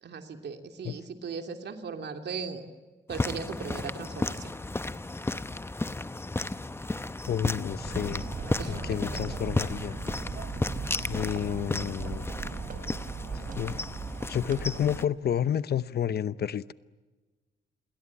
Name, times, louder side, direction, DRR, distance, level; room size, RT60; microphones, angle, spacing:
voice 1, 0.0-2.7 3.1-4.5 8.6-9.0, right 5 dB, 65° right, 3.1 m, -38 dB
sound 1, 3.1-15.0, left 2 dB, 15° left, 0.8 m, -34 dB
voice 2, 7.3-8.2 8.7-10.0 11.0-12.3 13.3-13.8 14.3-16.6, left 9 dB, 60° left, 0.8 m, -30 dB
sound 2, 7.7-15.1, right 5 dB, 45° right, 3.2 m, -38 dB
28.5 x 22.0 x 8.6 m
wide cardioid pair, 125°, 19 cm